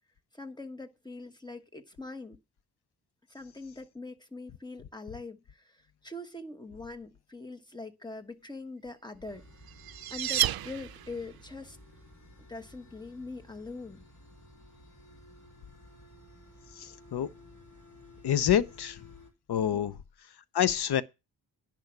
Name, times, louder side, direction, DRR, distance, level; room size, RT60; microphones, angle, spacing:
voice 1, 0.3-2.4 3.3-9.4 10.1-11.8 12.5-14.0 19.7-19.9, left 3 dB, 10° left, 1.2 m, -43 dB
sound 1, 9.2-19.3, left 1 dB, 50° left, 5.1 m, -54 dB
sound 2, 9.3-11.4, right 12 dB, 60° right, 0.5 m, -31 dB
voice 2, 16.8-17.3 18.2-19.0 19.5-20.0 20.5-21.0, left 10 dB, 70° left, 0.9 m, -27 dB
10.5 x 6.1 x 6.0 m
cardioid pair, 95°, 40 cm